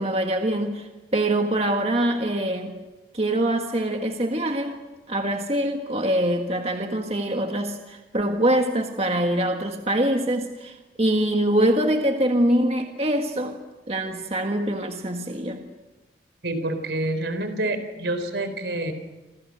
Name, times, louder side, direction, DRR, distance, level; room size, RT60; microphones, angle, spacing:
voice 1, 0.0-2.8 3.1-4.8 5.1-13.5 13.9-15.6, right 1 dB, 35° right, 4 dB, 1.7 m, -24 dB
voice 2, 16.4-18.9, right 1 dB, 75° right, 9 dB, 3.9 m, -27 dB
29.0 x 27.0 x 6.5 m, 1.1 s
head